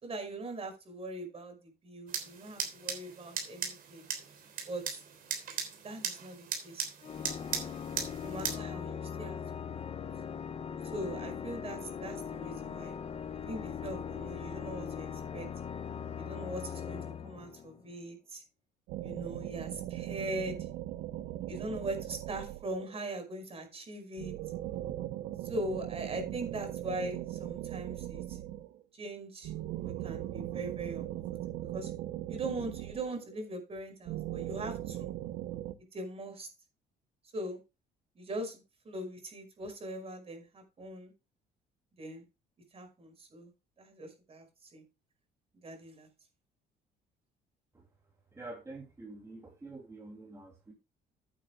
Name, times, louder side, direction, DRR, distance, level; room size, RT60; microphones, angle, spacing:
voice 1, 0.0-4.1 4.7-5.0 5.8-6.8 8.2-9.9 10.8-13.0 13.5-15.5 16.2-18.4 19.0-20.7 21.5-24.3 25.4-28.4 28.9-29.5 29.8-31.1 31.6-31.9 32.3-35.1 35.9-36.5 37.3-37.6 38.2-41.1 42.0-42.2 42.7-43.5 43.8-44.8 45.6-46.1, right 1 dB, 35° right, 6 dB, 5.2 m, -41 dB
sound 1, 2.1-8.6, right 7 dB, 55° right, 3.4 m, -38 dB
Organ, 7.0-18.0, left 7 dB, 35° left, 0.9 m, -40 dB
sound 2, 18.9-23.1 24.2-28.8 29.4-33.4 34.0-35.7, right 14 dB, 85° right, 0.8 m, -39 dB
voice 2, 48.3-50.7, right 2 dB, 15° right, 0 dB, 2.6 m, -47 dB
15.0 x 9.2 x 2.3 m, 0.26 s
cardioid pair, 110°, 17 cm